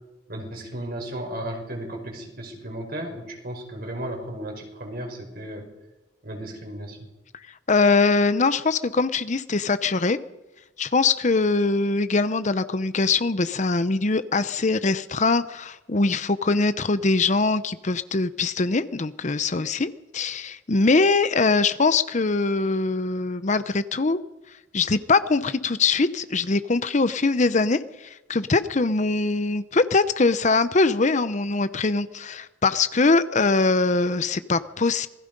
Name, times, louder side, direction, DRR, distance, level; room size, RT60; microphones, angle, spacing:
voice 1, 0.3-5.7 6.2-7.1, right 1 dB, 55° right, 2 dB, 5.3 m, -34 dB
voice 2, 7.7-10.2 10.8-24.2 24.7-35.1, left 3 dB, 40° left, 13 dB, 0.8 m, -22 dB
27.0 x 20.5 x 5.3 m, 1.0 s
head